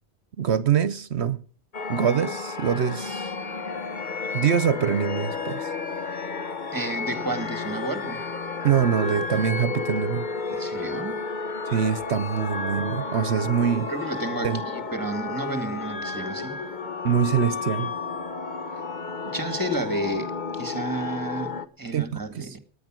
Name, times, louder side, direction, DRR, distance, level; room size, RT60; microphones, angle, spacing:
voice 1, 0.4-1.4 1.9-3.3 4.3-5.7 8.6-10.3 11.7-13.9 14.4-14.6 17.0-17.9 21.9-22.6, right 8 dB, 75° right, 1.1 m, -24 dB
sound 1, 1.7-21.7, left 4 dB, 45° left, 1.1 m, -32 dB
voice 2, 6.7-8.3 10.5-11.2 13.9-16.6 19.3-22.6, right 2 dB, 20° right, 1.9 m, -31 dB
17.5 x 9.9 x 6.2 m
omnidirectional pair, 1.1 m